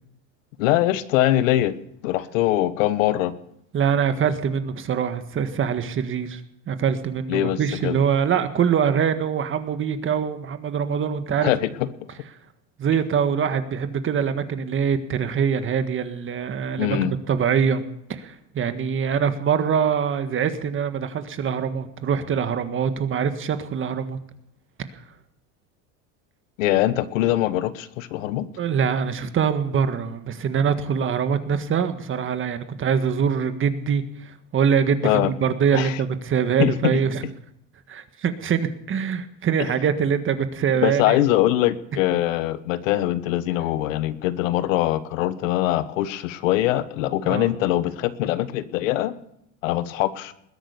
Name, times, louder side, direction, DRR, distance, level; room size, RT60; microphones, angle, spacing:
voice 1, 0.6-1.7 2.0-3.3 7.3-8.0 11.4-11.7 16.8-17.1 26.6-28.5 35.0-35.3 35.7-36.0 36.6-36.7 39.6-39.7 40.8-49.1 49.6-50.3, left 14 dB, 80° left, 13 dB, 1.3 m, -22 dB
voice 2, 3.7-6.4 6.7-11.5 12.8-17.8 18.1-24.2 28.6-37.2 37.9-41.2 47.2-47.5, right 7 dB, 30° right, 9 dB, 1.6 m, -24 dB
20.5 x 10.0 x 6.9 m, 0.75 s
supercardioid pair, 115°, 38 cm